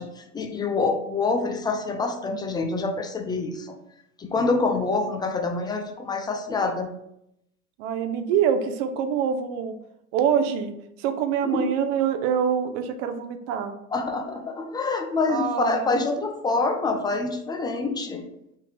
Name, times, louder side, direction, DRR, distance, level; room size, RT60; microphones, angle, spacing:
voice 1, 0.0-3.8 4.2-6.9 11.4-11.7 13.9-18.3, left 3 dB, 10° left, 4 dB, 0.4 m, -26 dB
voice 2, 7.8-9.7 10.1-10.7 11.0-13.7 15.3-16.0, right 8 dB, 60° right, 8 dB, 0.7 m, -25 dB
3.7 x 2.7 x 4.0 m, 0.80 s
hypercardioid pair, 90°, 43 cm